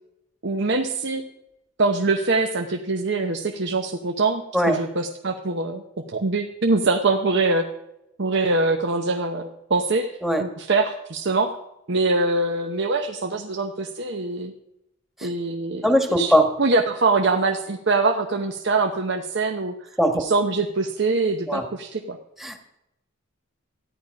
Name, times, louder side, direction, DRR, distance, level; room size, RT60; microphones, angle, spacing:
voice 1, 0.4-1.2 1.8-5.8 6.1-7.6 8.2-10.1 10.4-11.5 11.9-14.5 15.2-19.7 20.1-22.2, right 3 dB, 60° right, 4 dB, 0.9 m, -23 dB
voice 2, 15.8-16.5 20.0-20.2 21.5-21.6 22.4-22.6, equal, ahead, 4 dB, 1.4 m, -19 dB
14.0 x 10.5 x 5.2 m, 0.89 s
head